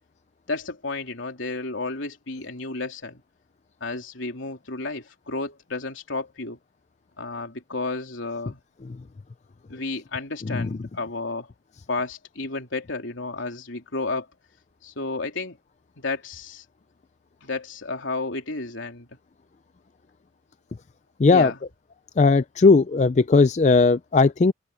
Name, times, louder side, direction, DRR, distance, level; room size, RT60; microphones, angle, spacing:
voice 1, 0.5-3.2 3.8-6.6 7.2-8.6 9.7-11.5 11.9-14.3 14.8-15.6 16.0-16.6 17.4-19.1 21.3-21.6, left 3 dB, 80° left, 3.4 m, -32 dB
voice 2, 21.2-21.5 22.2-24.5, left 4 dB, 35° left, 0.4 m, -17 dB
open air
head